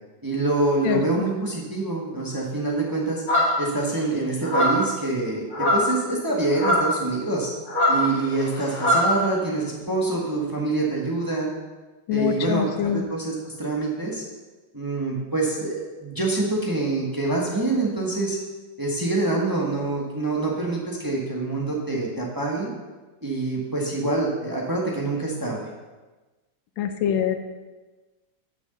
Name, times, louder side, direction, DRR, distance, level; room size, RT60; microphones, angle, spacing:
voice 1, 0.2-3.2 3.6-7.5 7.9-11.5 12.1-14.2 14.7-18.4 18.8-22.7 23.2-25.6, right 2 dB, 15° right, -2 dB, 1.2 m, -26 dB
voice 2, 0.8-1.2 12.1-13.0 26.8-27.3, left 8 dB, 80° left, 8 dB, 1.4 m, -24 dB
sound 1, 3.3-3.7 4.4-4.9 5.5-6.0 6.5-6.9 7.7-9.1, equal, 50° left, 3.6 m, -21 dB
6.9 x 6.4 x 6.7 m, 1.2 s
omnidirectional pair, 2.1 m